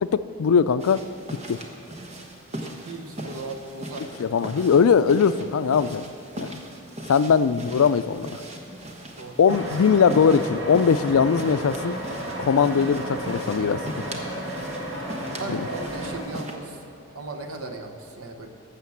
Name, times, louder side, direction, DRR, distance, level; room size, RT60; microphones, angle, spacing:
voice 1, 0.0-1.0 1.5-1.6 4.2-6.0 6.4-6.5 7.1-8.4 9.4-12.0 12.4-13.8 15.5-15.6, left 6 dB, 85° left, 15 dB, 0.4 m, -20 dB
sound 1, 0.8-16.6, right 1 dB, 30° right, 1.1 m, -39 dB
voice 2, 2.8-4.7 9.2-9.4 15.4-16.8 17.1-18.5, right 2 dB, 90° right, 5 dB, 1.1 m, -37 dB
sound 2, 9.5-16.2, right 1 dB, 65° right, 2.2 m, -33 dB
12.5 x 7.4 x 7.1 m, 2.7 s
head